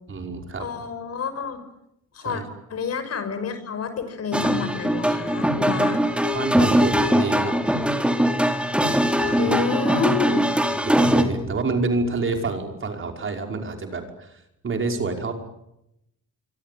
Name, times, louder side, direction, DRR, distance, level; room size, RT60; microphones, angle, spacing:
voice 1, 0.1-0.7 2.2-2.4 6.0-7.6 9.2-9.5 10.5-15.3, right 3 dB, 40° right, 4 dB, 5.6 m, -28 dB
voice 2, 0.6-1.6 2.1-2.4 2.7-6.0 9.4-10.5, left 6 dB, 55° left, 10 dB, 6.2 m, -29 dB
sound 1, 4.3-11.2, equal, 5° right, 4.1 m, -21 dB
25.5 x 24.5 x 9.5 m, 0.84 s
cardioid pair, 90°, 30 cm